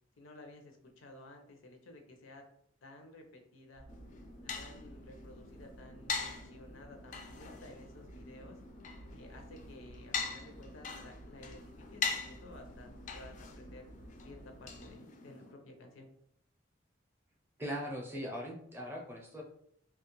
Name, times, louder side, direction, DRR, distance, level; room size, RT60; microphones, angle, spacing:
voice 1, 0.2-2.4 2.8-3.8 4.4-8.6 9.1-13.9 14.2-16.1, left 2 dB, 85° left, 4 dB, 0.6 m, -54 dB
sound 1, 3.7-15.0, right 1 dB, 80° right, 0.5 m, -55 dB
sound 2, 3.9-15.5, left 5 dB, 40° left, 0.4 m, -43 dB
voice 2, 17.6-19.4, equal, 10° right, 0 dB, 0.5 m, -40 dB
2.9 x 2.3 x 2.9 m, 0.68 s
head